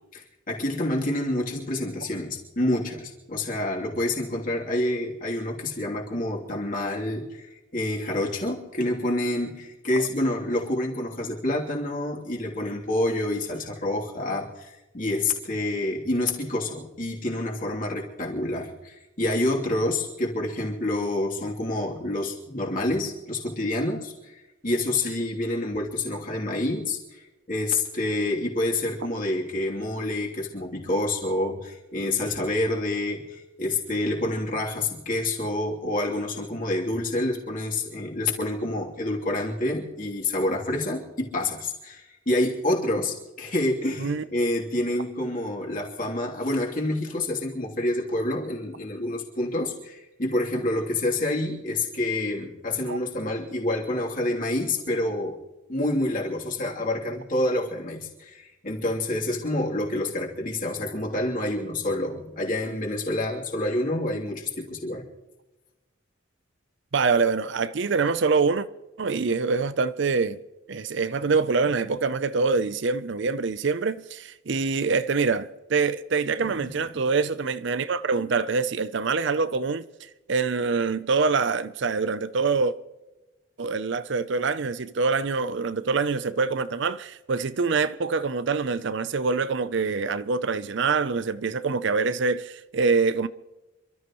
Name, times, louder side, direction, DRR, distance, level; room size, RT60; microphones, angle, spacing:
voice 1, 0.1-27.2 27.5-55.4 55.7-65.0 76.4-76.7, left 1 dB, 40° left, 3.0 m, -28 dB
voice 2, 66.9-68.7 69.0-70.4 70.7-79.9 80.3-82.7 83.6-93.3, right 4 dB, 55° right, 0.5 m, -25 dB
28.0 x 13.0 x 3.1 m
head